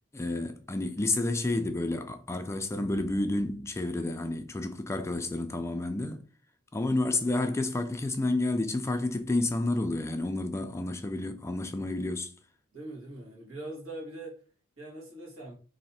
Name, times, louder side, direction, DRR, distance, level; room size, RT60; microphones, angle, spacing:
voice 1, 0.1-6.2 6.7-12.3, left 2 dB, 15° left, 0.3 m, -30 dB
voice 2, 12.7-14.3 14.8-15.5, right 2 dB, 70° right, 1.8 m, -42 dB
3.2 x 2.7 x 4.1 m
head